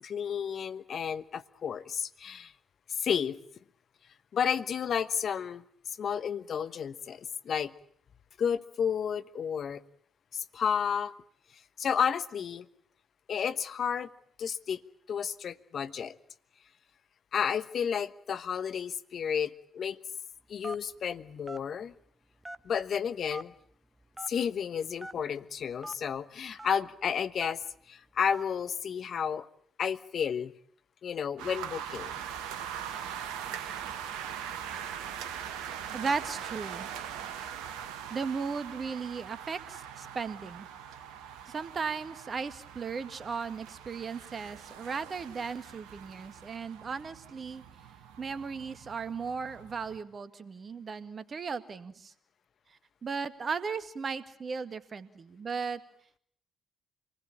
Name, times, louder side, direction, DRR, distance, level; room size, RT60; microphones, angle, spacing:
voice 1, 0.0-2.5 3.0-3.4 4.3-5.6 6.0-7.7 8.4-9.8 10.3-11.1 11.8-12.7 13.3-14.1 14.4-14.8 15.1-16.1 17.3-20.0 20.5-21.9 22.6-23.5 24.3-27.6 27.9-29.5 29.8-30.5 31.0-32.1, left 7 dB, 55° left, 13 dB, 1.2 m, -31 dB
Telephone, 20.6-20.9 21.5-21.6 22.4-22.8 23.3-23.4 24.1-24.3 25.0-25.1 25.8-25.9 26.6-26.7 27.4-27.6 28.3-28.5, right 1 dB, 15° right, 1.5 m, -41 dB
sound 1, 31.4-50.0, right 9 dB, 70° right, 1.6 m, -42 dB
voice 2, 35.9-36.9 38.1-40.7 41.5-47.6 48.2-52.1 53.0-55.8, right 5 dB, 45° right, 12 dB, 2.0 m, -36 dB
27.5 x 20.0 x 8.9 m, 0.62 s
figure-of-eight pair, 40°, 0 cm